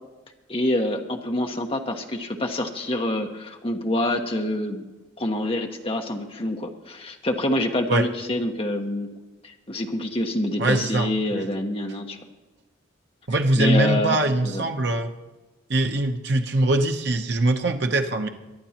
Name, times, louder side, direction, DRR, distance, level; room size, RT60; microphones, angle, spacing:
voice 1, 0.5-4.8 5.2-9.1 9.4-12.2 13.5-14.7, left 1 dB, 30° left, 3 dB, 1.2 m, -26 dB
voice 2, 10.6-11.5 13.3-15.1 15.7-18.3, right 2 dB, 60° right, 4 dB, 0.9 m, -22 dB
23.5 x 11.0 x 2.9 m, 1.2 s
head